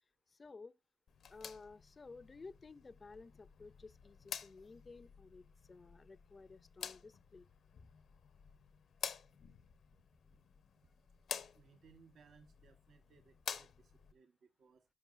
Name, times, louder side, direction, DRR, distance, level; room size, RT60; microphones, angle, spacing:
voice 1, 0.3-0.7 1.3-7.5, left 4 dB, 35° left, 0.5 m, -55 dB
sound 1, 1.1-14.1, left 7 dB, 75° left, 0.7 m, -50 dB
voice 2, 11.5-14.8, right 5 dB, 75° right, 0.8 m, -65 dB
13.5 x 5.3 x 2.4 m
cardioid pair, 80°, 0 cm